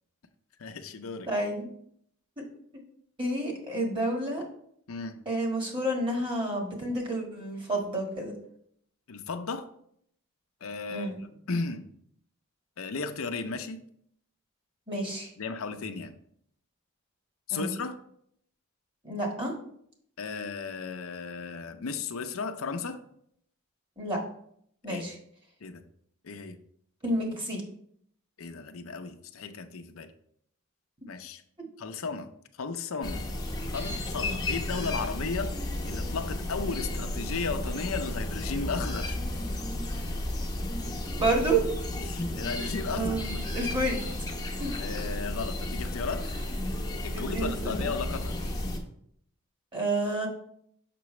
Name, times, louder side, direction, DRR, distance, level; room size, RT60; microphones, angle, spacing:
voice 1, 0.6-1.3 4.9-5.2 9.1-9.7 10.6-11.8 12.8-13.8 15.4-16.1 17.5-18.0 20.2-23.0 24.9-25.0 25.6-25.8 26.2-26.6 28.4-30.1 31.1-31.4 31.8-32.3 32.6-33.2 33.7-39.2 42.0-43.1 44.8-46.3 47.0-48.3, left 4 dB, 85° left, 7 dB, 0.6 m, -35 dB
voice 2, 1.3-1.7 3.2-4.4 5.2-8.3 10.9-11.2 14.9-15.3 17.5-17.7 19.0-19.5 24.0-24.2 24.8-25.1 27.0-27.6 41.2-41.7 42.9-44.0 44.6-44.7 47.1-47.9 49.7-50.3, right 2 dB, 25° right, 0 dB, 1.5 m, -29 dB
sound 1, 33.0-48.8, left 1 dB, 20° left, 0.8 m, -33 dB
6.8 x 5.9 x 3.2 m, 0.68 s
head